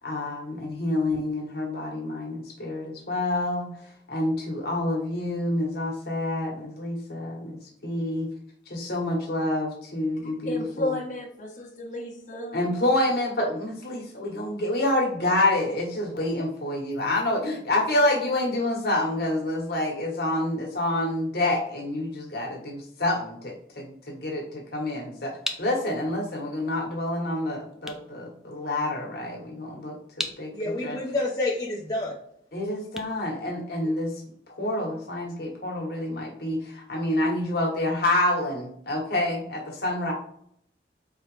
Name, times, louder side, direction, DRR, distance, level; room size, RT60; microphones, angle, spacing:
voice 1, 0.0-3.7 4.1-8.3 8.7-10.9 12.5-17.4 17.7-30.5 30.8-31.0 32.5-34.1 34.6-40.1, left 1 dB, 60° left, -1 dB, 1.4 m, -28 dB
voice 2, 10.2-12.6, left 1 dB, 45° left, -2 dB, 1.2 m, -33 dB
sound 1, 25.4-34.2, equal, 5° right, 0.3 m, -41 dB
voice 3, 30.5-32.2 33.8-33.9, left 2 dB, 20° left, -5 dB, 0.7 m, -28 dB
4.7 x 3.0 x 3.2 m, 0.67 s
head